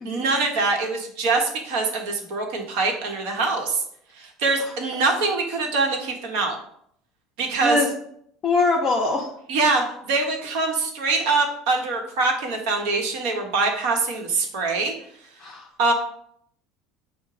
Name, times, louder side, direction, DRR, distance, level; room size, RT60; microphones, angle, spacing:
voice 1, 0.0-3.8 4.2-6.6 7.4-7.8 9.5-14.9 15.8-15.9, right 3 dB, 70° right, 2 dB, 0.9 m, -24 dB
voice 2, 8.4-9.3 15.4-15.6, left 3 dB, 25° left, -1 dB, 0.5 m, -23 dB
4.9 x 2.1 x 4.7 m, 0.68 s
cardioid pair, 160°, 0 cm